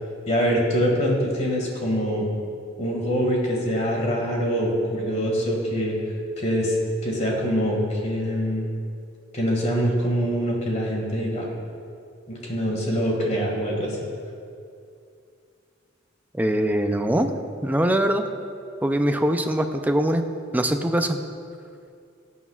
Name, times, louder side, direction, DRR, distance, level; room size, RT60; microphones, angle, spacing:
voice 1, 0.3-2.3 2.8-6.0 6.4-6.7 7.0-8.7 9.3-11.5 12.3-14.0, equal, 35° left, -1 dB, 2.0 m, -24 dB
voice 2, 16.3-17.3 17.6-18.3 18.8-20.2 20.5-21.2, right 1 dB, 10° right, 6 dB, 0.5 m, -22 dB
15.5 x 9.4 x 2.4 m, 2.4 s
head